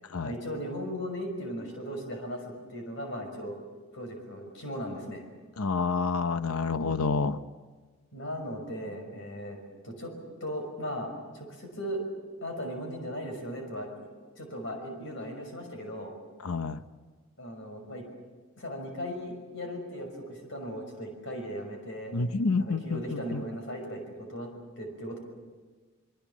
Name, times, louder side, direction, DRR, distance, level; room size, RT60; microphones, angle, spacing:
voice 1, 0.2-2.4 2.7-3.6 3.9-5.2 8.1-9.6 9.8-10.1 10.4-12.0 12.4-14.1 14.4-16.1 17.4-18.0 18.6-22.1 22.6-24.0 24.3-24.5 24.8-25.2, equal, 60° left, 3 dB, 6.0 m, -37 dB
voice 2, 5.6-7.4 16.4-16.8 22.1-23.4, left 4 dB, 85° left, 12 dB, 0.8 m, -28 dB
25.0 x 23.0 x 7.2 m, 1.4 s
head